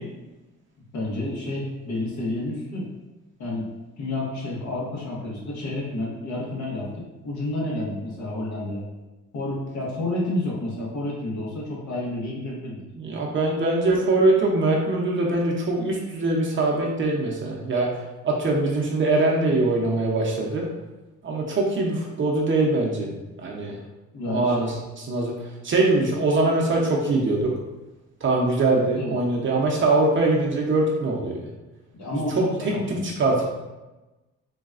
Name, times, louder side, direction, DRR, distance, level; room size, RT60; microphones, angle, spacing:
voice 1, 0.9-2.9 3.4-3.7 4.0-6.9 7.2-8.8 9.3-12.8 24.1-24.7 28.9-29.1 32.0-33.1, left 1 dB, 70° left, -4 dB, 1.1 m, -30 dB
voice 2, 13.0-17.9 18.2-20.6 21.2-23.1 23.4-23.8 24.3-24.7 25.0-25.3 25.6-27.5 28.2-31.3 32.6-33.4, right 2 dB, 40° right, -2 dB, 0.6 m, -22 dB
4.0 x 2.2 x 2.4 m, 1.1 s
cardioid pair, 90°, 30 cm